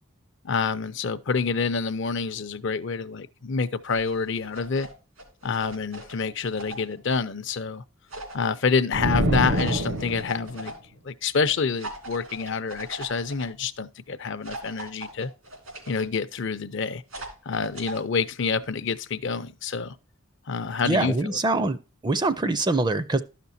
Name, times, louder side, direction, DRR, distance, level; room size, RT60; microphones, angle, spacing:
voice 1, 0.4-4.9 5.4-7.8 8.3-10.7 11.0-15.3 15.9-17.0 17.4-19.9 20.5-21.4, left 5 dB, 60° left, 0.6 m, -27 dB
sound 1, 3.9-4.9 5.2-6.9 8.1-8.5 9.5-10.7 11.8-13.4 14.4-16.0 17.1-18.0, right 2 dB, 90° right, 2.8 m, -39 dB
sound 2, 8.9-10.6, right 1 dB, 70° right, 0.9 m, -25 dB
voice 2, 20.9-21.8 22.0-23.2, right 2 dB, 20° right, 0.4 m, -24 dB
12.5 x 5.9 x 2.6 m
head